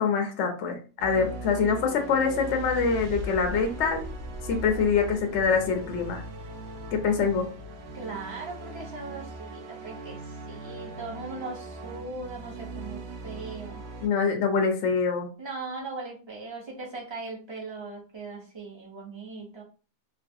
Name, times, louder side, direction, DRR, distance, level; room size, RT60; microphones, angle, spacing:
voice 1, 0.0-4.0 4.5-6.2 6.9-7.5 14.0-15.3, left 5 dB, 65° left, 4 dB, 0.7 m, -25 dB
sound 1, 1.0-14.1, right 2 dB, 70° right, 1.0 m, -39 dB
voice 2, 7.9-13.8 15.4-19.6, right 3 dB, 30° right, -3 dB, 0.5 m, -39 dB
3.1 x 2.3 x 2.6 m, 0.36 s
omnidirectional pair, 1.8 m